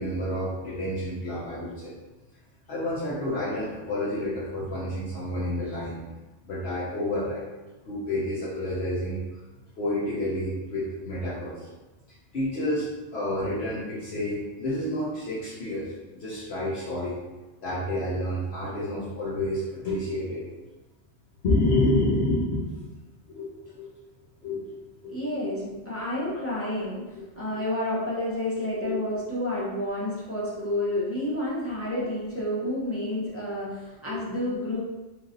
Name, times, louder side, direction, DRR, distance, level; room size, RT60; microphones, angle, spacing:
voice 1, 0.0-1.9 2.7-6.0 6.5-7.4 7.8-9.2 9.8-11.7 12.3-12.9 13.1-17.1 17.6-20.4 21.4-22.6 23.3-23.5 23.7-23.9 24.4-24.6 25.0-25.1 26.2-26.4 28.8-29.0 29.6-29.7 34.1-34.3, left 1 dB, 65° left, -8 dB, 1.0 m, -29 dB
voice 2, 25.1-27.0 27.4-34.8, left 1 dB, 15° left, -8 dB, 0.5 m, -30 dB
3.2 x 2.6 x 2.5 m, 1.1 s
omnidirectional pair, 1.2 m